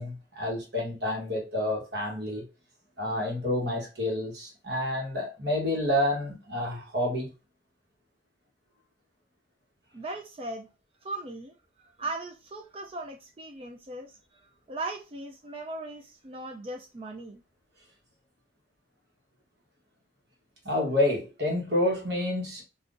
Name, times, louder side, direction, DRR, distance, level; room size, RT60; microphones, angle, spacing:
voice 1, 0.0-2.4 3.0-7.3 20.6-22.6, left 1 dB, 60° right, 1.2 m, -29 dB
voice 2, 9.9-10.7 11.0-11.5 11.8-17.4, right 2 dB, 30° right, 0.4 m, -38 dB
3.7 x 2.4 x 2.5 m
head